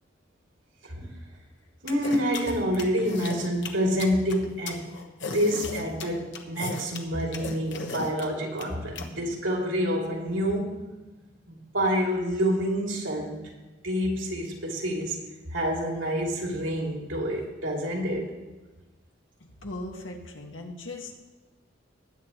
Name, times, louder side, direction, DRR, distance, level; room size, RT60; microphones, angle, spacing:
voice 1, 1.8-4.9 5.2-10.8 11.5-13.4 13.8-15.2 15.5-18.3, equal, 85° right, -1 dB, 2.9 m, -27 dB
sound 1, 1.9-9.0, left 4 dB, 65° left, 1.2 m, -36 dB
voice 2, 19.6-21.1, left 2 dB, 85° left, 2 dB, 1.7 m, -38 dB
19.5 x 9.1 x 3.1 m, 1.1 s
head